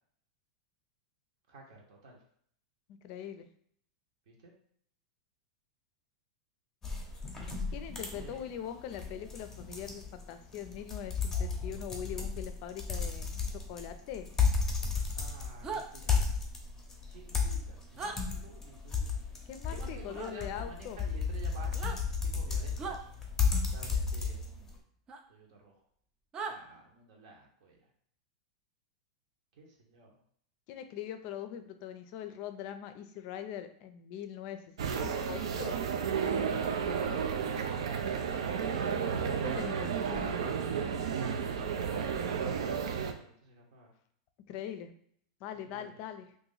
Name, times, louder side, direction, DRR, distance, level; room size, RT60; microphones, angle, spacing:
voice 1, 1.5-2.2 4.3-4.5 8.1-8.4 15.2-16.3 17.0-19.1 19.7-23.1 23.7-24.8 25.3-25.7 26.4-27.8 29.6-30.1 36.8-37.3 41.5-43.9 45.6-45.9, right 3 dB, 60° right, -1 dB, 0.9 m, -52 dB
voice 2, 3.0-3.5 7.7-13.3 13.7-14.3 19.5-21.0 30.7-35.8 39.4-40.6 44.5-44.9 45.4-46.3, left 9 dB, 45° left, 9 dB, 0.4 m, -42 dB
sound 1, 6.8-24.7, left 5 dB, 15° left, 0.7 m, -34 dB
sound 2, 15.6-15.8 18.0-18.2 20.1-20.3 21.7-22.0 22.8-23.0 25.1-25.2 26.3-26.6, right 4 dB, 25° right, 0.4 m, -38 dB
sound 3, 34.8-43.1, right 7 dB, 85° right, 0.5 m, -32 dB
2.8 x 2.5 x 3.9 m, 0.63 s
supercardioid pair, 145°, 3 cm